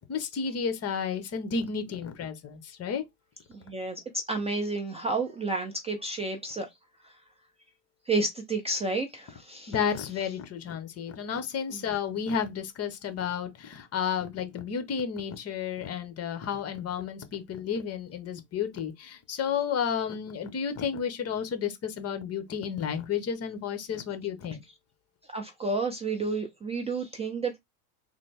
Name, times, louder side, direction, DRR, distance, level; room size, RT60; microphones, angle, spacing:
voice 1, 0.1-3.0 9.7-24.6, left 7 dB, 35° left, 0.9 m, -32 dB
voice 2, 3.5-6.7 7.0-7.2 8.1-9.7 11.7-11.8 25.3-27.6, right 3 dB, 15° right, 0.5 m, -31 dB
3.8 x 2.0 x 3.4 m
hypercardioid pair, 100°, 46 cm